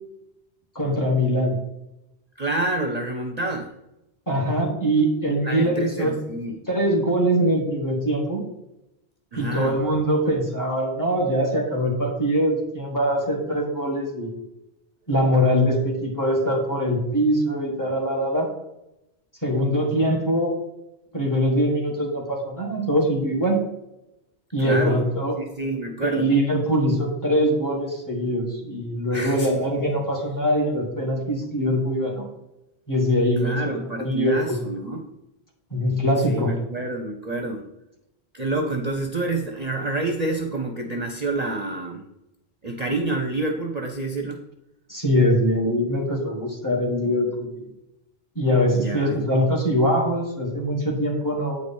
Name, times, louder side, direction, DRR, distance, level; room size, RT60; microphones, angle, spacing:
voice 1, 0.8-1.6 4.3-6.1 6.7-8.5 9.4-14.3 15.1-18.5 19.4-20.6 21.1-23.6 24.5-25.4 26.0-32.3 32.9-34.6 35.7-36.5 44.9-47.6 48.4-51.6, equal, 20° left, -1 dB, 1.7 m, -22 dB
voice 2, 2.4-3.7 5.4-6.6 9.3-9.7 24.6-25.0 25.4-26.3 29.1-29.6 33.4-35.0 36.3-37.6 38.3-42.0 42.6-44.4 48.7-49.3, right 2 dB, 45° right, 3 dB, 0.8 m, -28 dB
8.6 x 4.8 x 4.3 m, 0.88 s
omnidirectional pair, 1.1 m